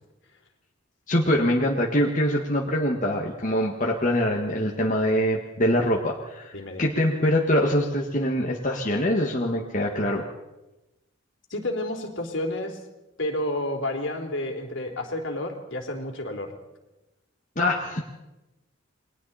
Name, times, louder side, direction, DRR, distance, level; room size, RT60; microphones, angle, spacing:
voice 1, 1.1-10.2 17.6-18.0, left 1 dB, 40° left, -1 dB, 1.8 m, -24 dB
voice 2, 6.5-6.8 11.5-12.8 13.2-16.5, left 1 dB, 65° left, 3 dB, 3.4 m, -30 dB
29.0 x 21.5 x 4.3 m, 1.0 s
head